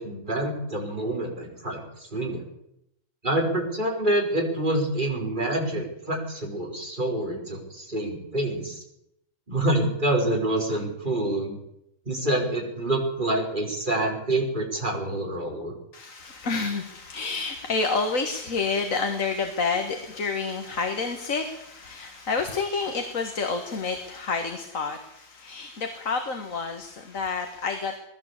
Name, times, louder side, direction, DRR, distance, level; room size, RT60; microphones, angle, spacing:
voice 1, 0.0-2.4 3.2-8.8 9.5-11.6 12.0-15.7, right 1 dB, 35° right, 0 dB, 5.1 m, -27 dB
voice 2, 15.9-28.0, left 4 dB, 75° left, 5 dB, 2.2 m, -29 dB
20.0 x 16.5 x 8.3 m, 0.80 s
omnidirectional pair, 1.4 m